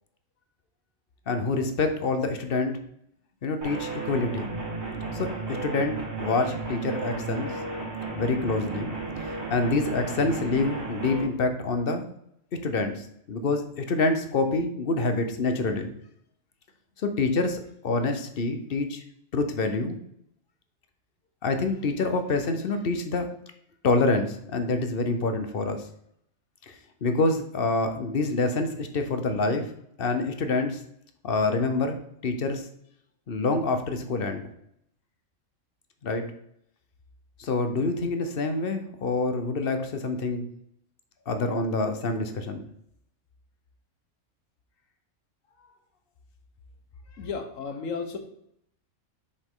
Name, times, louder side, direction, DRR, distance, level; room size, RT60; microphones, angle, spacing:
voice 1, 1.3-2.7 3.4-4.5 5.1-7.5 8.2-9.0 9.5-12.0 12.6-15.9 17.0-19.0 19.3-20.0 21.4-23.3 23.8-25.8 26.7-26.8 27.0-29.7 30.0-30.8 31.2-32.7 33.3-34.5 36.0-36.2 37.4-40.4 41.3-42.6, left 3 dB, 50° left, 7 dB, 0.9 m, -26 dB
sound 1, 3.6-11.2, right 3 dB, 55° right, 2.8 m, -34 dB
voice 2, 47.2-48.2, left 5 dB, 80° left, 6 dB, 1.4 m, -33 dB
6.6 x 5.1 x 3.7 m, 0.73 s
omnidirectional pair, 1.4 m